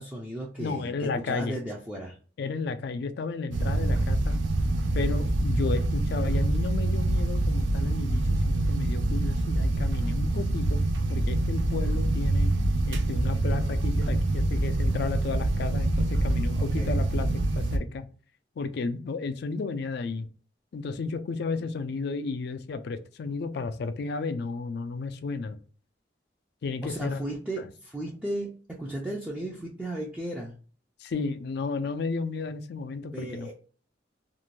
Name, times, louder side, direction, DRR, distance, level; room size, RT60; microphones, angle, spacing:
voice 1, 0.0-2.2 16.6-16.9 26.8-30.5 33.1-33.5, right 1 dB, 5° right, 0.4 m, -35 dB
voice 2, 0.6-1.6 2.4-4.4 4.9-10.8 11.1-12.5 12.9-18.1 18.6-20.3 20.7-25.6 26.6-27.2 27.6-27.7 31.0-33.5, left 4 dB, 65° left, 0.3 m, -33 dB
sound 1, 3.5-17.8, right 2 dB, 90° right, 0.4 m, -25 dB
2.5 x 2.1 x 3.0 m
head